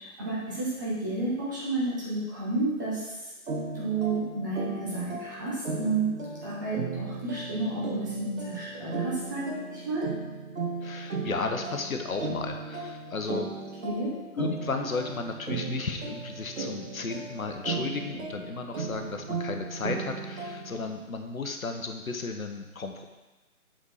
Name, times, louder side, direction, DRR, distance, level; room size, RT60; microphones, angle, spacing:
voice 1, 0.2-3.1 3.7-6.1 6.4-10.1 13.8-14.1, right 2 dB, 15° right, -8 dB, 1.1 m, -31 dB
sound 1, 3.5-20.9, right 4 dB, 65° right, 1.6 m, -36 dB
voice 2, 10.8-13.5 14.3-23.1, left 4 dB, 70° left, 4 dB, 1.1 m, -34 dB
8.2 x 4.2 x 4.9 m, 1.1 s
figure-of-eight pair, 160°, 43 cm